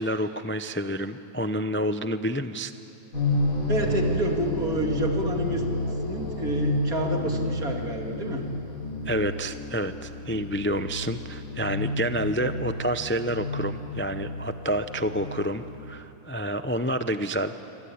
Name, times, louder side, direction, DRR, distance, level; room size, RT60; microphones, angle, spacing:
voice 1, 0.0-2.7 9.1-17.5, equal, 15° left, 10 dB, 0.4 m, -29 dB
sound 1, 3.1-15.9, left 2 dB, 75° left, 4.1 m, -30 dB
voice 2, 3.7-5.6 6.0-8.5, right 1 dB, 80° right, 2 dB, 3.1 m, -28 dB
28.0 x 24.5 x 8.7 m, 2.8 s
omnidirectional pair, 1.5 m